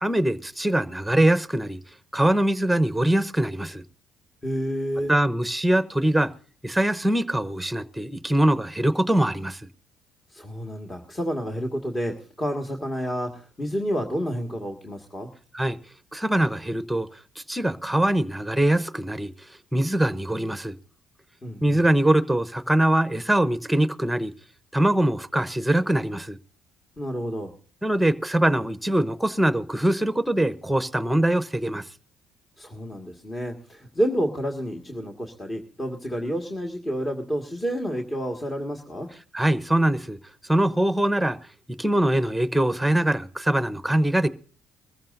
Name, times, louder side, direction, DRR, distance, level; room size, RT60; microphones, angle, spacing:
voice 1, 0.0-1.8 2.1-3.8 5.1-6.3 6.6-9.6 15.5-15.8 16.1-17.1 17.5-19.3 19.7-20.7 21.6-24.3 24.7-26.4 27.8-31.8 39.3-40.2 40.5-41.4 41.7-44.3, right 1 dB, 5° right, 0.9 m, -22 dB
voice 2, 4.4-5.1 10.3-15.3 21.4-21.8 27.0-27.5 32.6-39.1, equal, 25° left, 1.9 m, -29 dB
21.5 x 14.5 x 2.6 m
hypercardioid pair, 60°, 0 cm